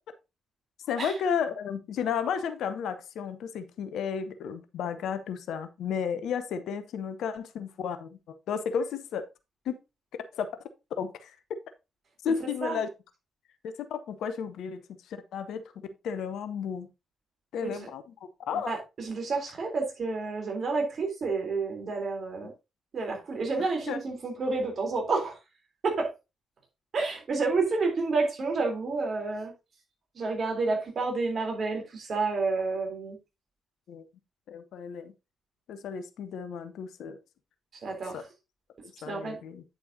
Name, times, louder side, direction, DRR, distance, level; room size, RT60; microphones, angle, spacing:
voice 1, 0.8-8.2 8.5-9.2 9.7-9.8 10.3-10.5 11.0-11.6 12.2-12.9 13.8-16.9 17.5-18.1 18.5-18.7 23.9-24.0 33.9-34.0 34.5-35.1 35.7-37.2 38.1-38.2 39.0-39.6, left 7 dB, 60° left, 0.7 m, -33 dB
voice 2, 18.7-22.5 22.9-25.4 25.8-26.1 26.9-29.5 30.1-33.2 37.8-38.2 39.0-39.4, right 3 dB, 45° right, 3.3 m, -29 dB
8.8 x 7.8 x 2.7 m
figure-of-eight pair, 40°, 0 cm